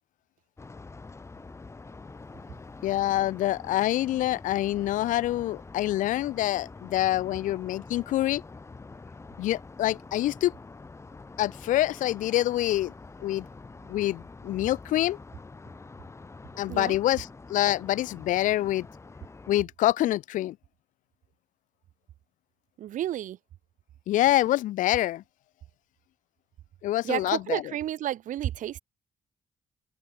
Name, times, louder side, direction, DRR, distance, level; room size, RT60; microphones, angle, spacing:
sound 1, 0.6-19.6, left 3 dB, 20° left, 1.5 m, -46 dB
voice 1, 2.8-8.4 9.4-10.5 11.4-12.9 13.2-13.5 13.9-15.2 16.6-18.9 19.5-20.6 24.1-25.2 26.8-27.6, left 14 dB, 75° left, 0.4 m, -26 dB
voice 2, 22.8-23.4 27.0-28.8, right 12 dB, 80° right, 1.7 m, -31 dB
open air
cardioid pair, 115°, 13 cm